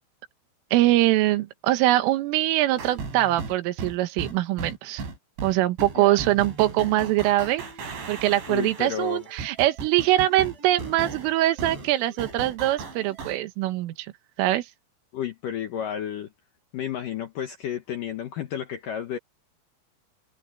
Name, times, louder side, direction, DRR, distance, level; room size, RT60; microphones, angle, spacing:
voice 1, 0.7-5.0 5.4-7.6 8.1-14.1 14.4-14.7, right 15 dB, 85° right, 3.9 m, -23 dB
sound 1, 2.7-13.4, right 4 dB, 65° right, 8.5 m, -37 dB
voice 2, 8.5-9.3 15.1-16.3 16.7-19.2, left 9 dB, 75° left, 1.9 m, -32 dB
omnidirectional pair, 5.7 m